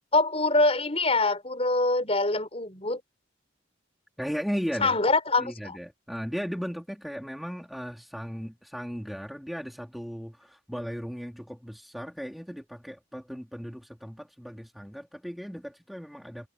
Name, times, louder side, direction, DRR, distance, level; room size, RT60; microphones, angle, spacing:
voice 1, 0.1-3.0 4.8-5.8, left 2 dB, 35° left, 4.9 m, -24 dB
voice 2, 4.2-5.0 5.4-16.5, equal, ahead, 2.7 m, -36 dB
head